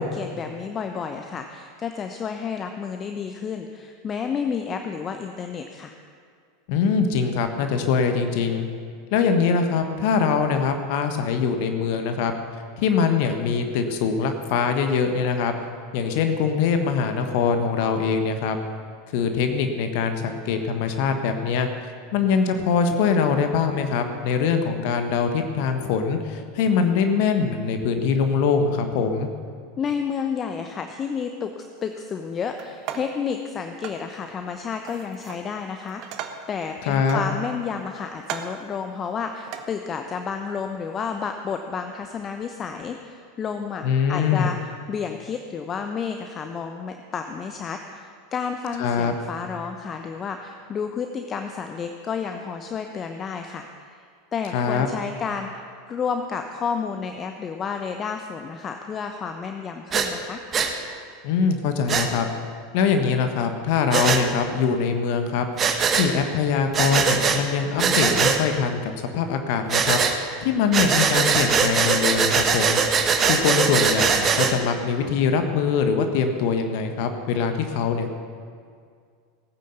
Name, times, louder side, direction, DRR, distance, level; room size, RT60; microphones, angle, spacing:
voice 1, 0.0-6.0 29.8-54.0 54.3-55.5 55.9-60.4, left 6 dB, 30° left, 5 dB, 0.9 m, -31 dB
voice 2, 6.7-8.6 9.1-12.3 12.8-15.5 15.9-18.6 19.1-21.7 22.1-29.3 36.9-37.2 43.8-44.5 48.8-49.1 54.5-54.9 61.2-62.3 62.7-65.4 65.9-70.0 70.4-72.8 73.3-78.1, left 6 dB, 60° left, 6 dB, 1.4 m, -23 dB
sound 1, 32.6-33.2 33.8-34.1 34.9-35.5 35.8-36.6 37.1-37.8 38.2-38.7 39.5-39.7, right 8 dB, 50° right, 1.1 m, -36 dB
Breathing, 59.9-60.1 60.5-60.7 61.9-62.1 63.9-64.2 65.6-66.1 66.7-67.4 67.8-68.4 69.7-70.1 70.7-74.5, right 6 dB, 30° right, 1.5 m, -21 dB
16.5 x 9.4 x 6.8 m, 2.1 s
hypercardioid pair, 85°, 0 cm